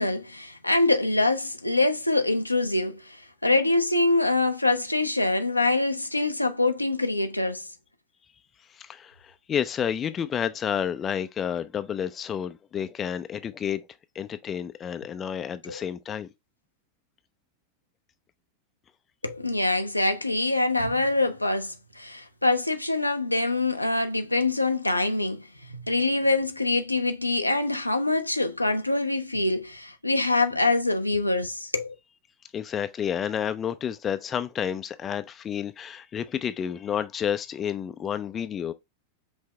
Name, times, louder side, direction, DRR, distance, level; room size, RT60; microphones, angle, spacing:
voice 1, 0.0-7.7 15.7-15.8 19.2-32.0, left 2 dB, 85° left, 0.5 m, -25 dB
voice 2, 8.7-13.8 14.1-16.3 32.5-38.7, left 8 dB, 25° left, 0.4 m, -30 dB
5.5 x 2.7 x 3.2 m
figure-of-eight pair, 90°, 0 cm